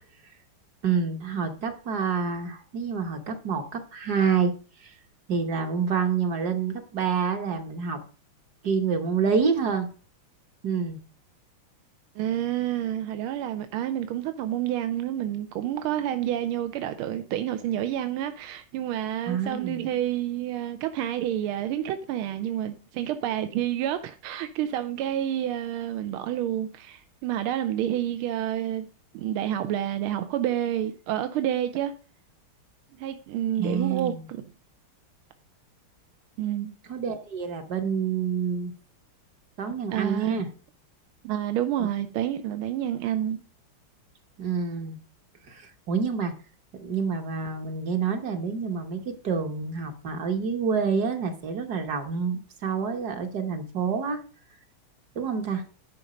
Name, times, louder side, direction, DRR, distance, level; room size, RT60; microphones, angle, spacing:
voice 1, 0.8-4.5 4.8-5.0 5.3-8.0 8.6-9.9 10.6-11.0 19.3-19.8 33.6-34.3 36.9-38.7 39.6-40.5 44.4-45.0 45.5-46.3 46.7-54.2 55.1-55.6, right 6 dB, 55° right, 1.5 m, -27 dB
voice 2, 12.2-28.9 29.1-31.9 33.0-34.4 36.4-36.7 39.9-40.4 41.2-43.4, right 11 dB, 85° right, 1.5 m, -29 dB
11.0 x 5.2 x 5.0 m
omnidirectional pair, 2.3 m